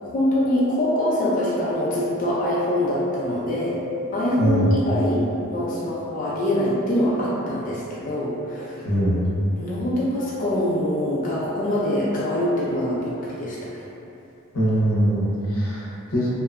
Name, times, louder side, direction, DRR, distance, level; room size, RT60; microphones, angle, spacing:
voice 1, 0.0-3.8 4.1-8.9 9.6-13.8, left 1 dB, 40° left, -7 dB, 0.3 m, -24 dB
voice 2, 4.4-4.7 8.8-9.3 14.5-16.3, equal, 85° left, -7 dB, 0.7 m, -22 dB
2.7 x 2.1 x 2.3 m, 2.8 s
head